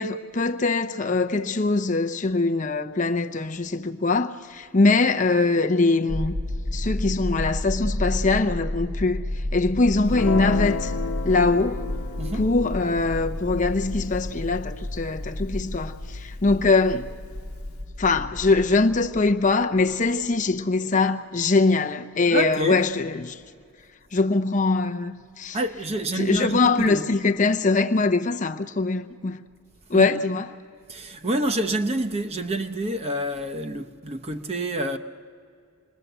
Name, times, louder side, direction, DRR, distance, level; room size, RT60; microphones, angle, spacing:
voice 1, 0.0-6.3 6.7-9.2 9.5-10.9 11.2-11.9 12.4-17.1 18.0-23.4 24.1-25.6 26.1-29.4 29.9-30.5, left 3 dB, 35° left, 0.7 m, -22 dB
sound 1, 6.1-20.2, left 1 dB, 65° right, 1.9 m, -31 dB
Guitar, 10.1-16.7, left 4 dB, 80° left, 1.0 m, -35 dB
voice 2, 12.2-12.5 22.3-22.8 25.5-27.0 29.9-30.1 30.9-35.0, right 1 dB, 30° right, 0.9 m, -27 dB
27.0 x 20.5 x 8.0 m
head